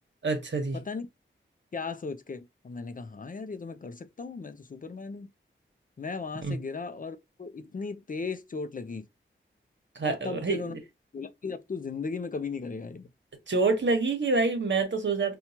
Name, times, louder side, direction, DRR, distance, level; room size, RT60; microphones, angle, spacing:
voice 1, 0.2-0.8 6.4-6.6 9.9-10.8 13.5-15.4, right 3 dB, 60° right, 1.1 m, -27 dB
voice 2, 1.7-5.3 6.0-9.0 10.0-10.8 11.1-13.1, left 4 dB, 40° left, 0.5 m, -36 dB
4.4 x 2.3 x 2.7 m
cardioid pair, 55°, 21 cm